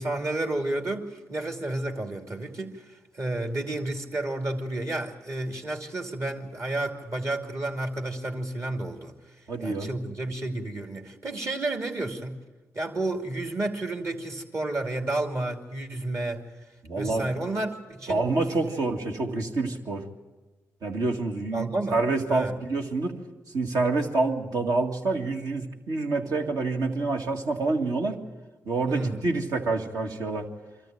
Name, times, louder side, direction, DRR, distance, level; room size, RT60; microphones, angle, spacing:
voice 1, 0.0-2.9 3.1-9.1 9.6-12.4 12.7-16.4 17.0-18.3 18.6-18.9 21.5-22.0 22.3-22.6 28.9-29.2, right 2 dB, 50° right, 4 dB, 2.8 m, -31 dB
voice 2, 9.5-9.9 16.8-17.3 18.1-20.0 20.8-23.1 23.5-28.2 28.7-30.4, right 3 dB, 70° right, 2 dB, 2.0 m, -27 dB
24.5 x 13.5 x 9.3 m, 1.2 s
supercardioid pair, 50°, 6 cm